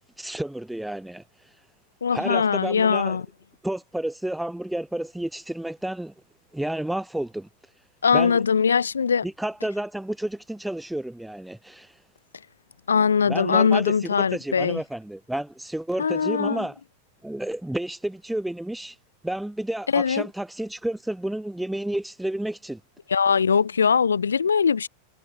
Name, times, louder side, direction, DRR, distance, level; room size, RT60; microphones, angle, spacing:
voice 1, 0.2-1.2 2.1-3.2 3.6-6.1 6.5-7.5 8.1-8.4 9.2-11.9 13.3-16.7 17.2-18.9 19.2-22.8, right 1 dB, 5° right, 6.5 m, -31 dB
voice 2, 2.0-3.2 8.0-9.2 12.9-14.8 16.0-16.6 19.9-20.3 23.1-24.9, left 6 dB, 70° left, 2.5 m, -21 dB
figure-of-eight pair, 90°, 0 cm